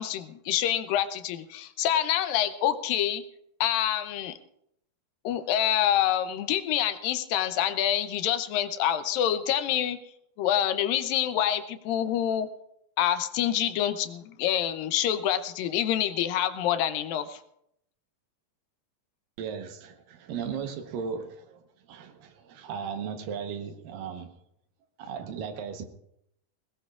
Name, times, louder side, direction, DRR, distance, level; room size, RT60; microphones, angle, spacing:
voice 1, 0.0-3.2 3.6-4.4 5.2-10.0 10.4-12.5 13.0-17.4, left 11 dB, 80° left, 10 dB, 2.5 m, -26 dB
voice 2, 19.4-21.6 21.9-24.3 25.0-25.9, right 6 dB, 75° right, 6 dB, 2.8 m, -36 dB
21.5 x 18.5 x 2.5 m, 0.76 s
omnidirectional pair, 4.0 m